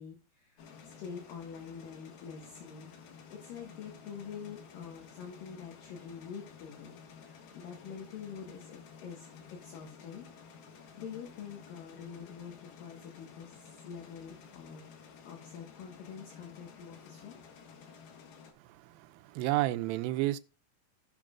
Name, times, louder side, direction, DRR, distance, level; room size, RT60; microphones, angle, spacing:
voice 1, 0.0-2.9 3.3-10.3 10.7-14.8 15.3-17.4, left 7 dB, 70° left, 3.1 m, -46 dB
sound 1, 0.6-18.5, left 6 dB, 85° left, 3.4 m, -53 dB
voice 2, 18.6-20.4, right 17 dB, 85° right, 2.4 m, -31 dB
16.5 x 5.9 x 2.4 m
omnidirectional pair, 4.2 m